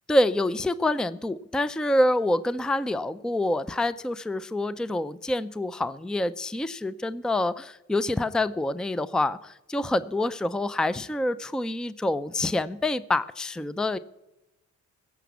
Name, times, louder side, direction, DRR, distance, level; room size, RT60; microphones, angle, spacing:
voice 1, 0.1-14.0, left 1 dB, ahead, 15 dB, 0.4 m, -26 dB
15.5 x 6.0 x 8.2 m, 0.93 s
cardioid pair, 90°, 30 cm